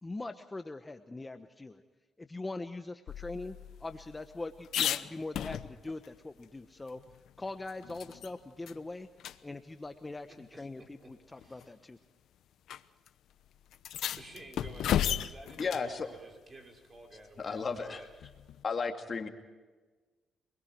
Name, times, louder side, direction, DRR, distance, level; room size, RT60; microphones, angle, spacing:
voice 1, 0.0-1.8 2.2-7.0 7.4-9.1 9.4-12.0, left 2 dB, 20° left, 8 dB, 1.1 m, -42 dB
sound 1, 3.1-6.1 6.4-6.5 6.9-8.3 8.7-8.8 9.2-9.4 10.4-10.5 11.4-11.7 12.7-12.8 13.1-13.2 13.7-15.9 18.2-18.6, left 10 dB, 75° left, 0.9 m, -35 dB
voice 2, 10.5-11.7 14.2-18.1, right 2 dB, 35° right, 2 dB, 6.0 m, -52 dB
voice 3, 15.6-16.2 17.4-18.1 18.6-19.3, left 5 dB, 40° left, 4 dB, 2.3 m, -34 dB
28.0 x 21.5 x 4.6 m, 1.3 s
cardioid pair, 90°, 0 cm